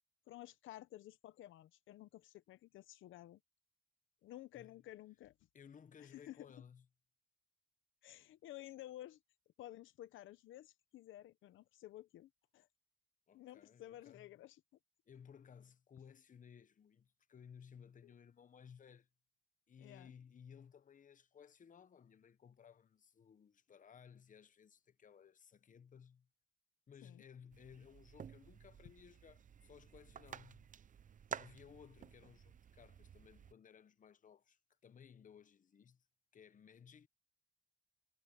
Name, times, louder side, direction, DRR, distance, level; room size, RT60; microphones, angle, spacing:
voice 1, 0.3-3.4 4.2-5.3 6.0-6.5 8.0-9.2 9.6-12.7 13.3-14.6 18.0-18.1 19.8-20.1 27.0-27.2, left 14 dB, 80° left, 0.8 m, -53 dB
voice 2, 5.5-6.9 13.3-14.3 15.1-19.1 19.7-26.3 26.9-30.7 31.3-36.0 36.3-37.1, left 7 dB, 40° left, 1.0 m, -60 dB
sound 1, 27.5-33.5, right 8 dB, 40° right, 0.7 m, -52 dB
cardioid pair, 90°, 20 cm